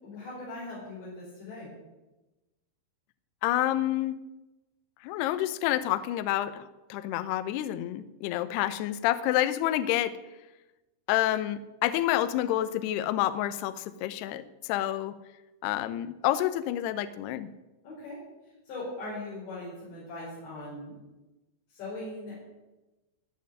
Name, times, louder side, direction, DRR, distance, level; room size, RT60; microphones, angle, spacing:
voice 1, 0.0-1.7 17.8-18.2 18.7-20.9 21.7-22.3, left 2 dB, 65° left, -8 dB, 7.1 m, -40 dB
voice 2, 3.4-4.2 5.0-10.1 11.1-15.1 15.6-17.5, left 13 dB, 80° left, 13 dB, 2.4 m, -28 dB
17.0 x 6.5 x 9.5 m, 1.1 s
omnidirectional pair, 5.5 m